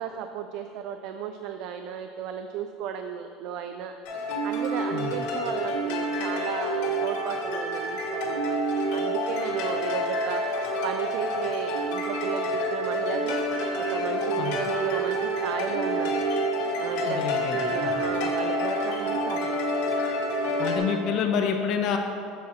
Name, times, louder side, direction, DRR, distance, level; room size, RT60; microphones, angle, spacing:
voice 1, 0.0-3.9 4.4-8.6 8.9-13.4 13.8-16.2 16.8-19.6, right 8 dB, 50° right, 7 dB, 0.3 m, -35 dB
sound 1, 4.0-20.8, equal, 70° left, 1.6 m, -28 dB
voice 2, 17.1-18.0 20.6-22.0, left 7 dB, 45° left, 4 dB, 0.6 m, -28 dB
7.2 x 4.2 x 6.1 m, 2.5 s
cardioid pair, 165°, 0 cm